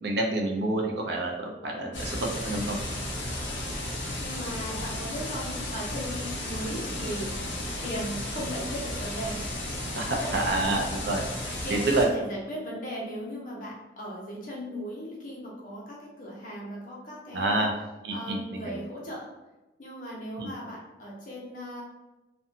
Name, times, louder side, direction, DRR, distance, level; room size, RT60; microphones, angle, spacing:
voice 1, 0.0-2.8 10.0-11.3 11.7-12.1 17.3-17.7 18.0-18.8 20.4-20.5, right 2 dB, 60° right, 1 dB, 0.4 m, -28 dB
Content warning, 1.9-12.1, left 1 dB, 75° left, 0.8 m, -34 dB
voice 2, 4.2-7.4 7.8-9.4 10.2-10.8 11.6-17.7 18.1-19.3 19.8-21.8, equal, 45° left, -4 dB, 0.7 m, -37 dB
2.6 x 2.1 x 2.7 m, 1.0 s
head